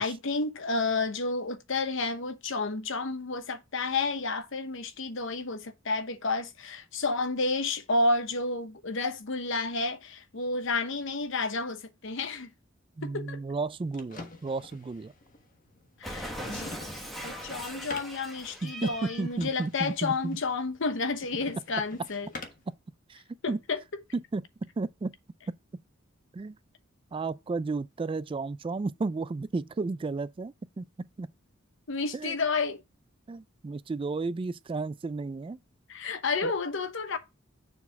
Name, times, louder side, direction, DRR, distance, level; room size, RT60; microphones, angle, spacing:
voice 1, 0.0-12.5 13.0-13.4 16.0-22.3 23.4-23.8 31.9-32.8 35.9-37.2, left 3 dB, 65° left, 0.9 m, -31 dB
voice 2, 13.0-15.1 18.6-20.4 23.1-23.6 24.3-24.4 24.8-25.1 26.3-26.6 27.1-31.3 32.1-32.4 33.3-35.6 36.4-36.5, right 3 dB, 25° right, 0.3 m, -33 dB
sound 1, 13.5-22.7, left 3 dB, 40° left, 1.3 m, -48 dB
Cat, 16.0-19.3, equal, ahead, 1.4 m, -40 dB
7.1 x 4.1 x 5.7 m
head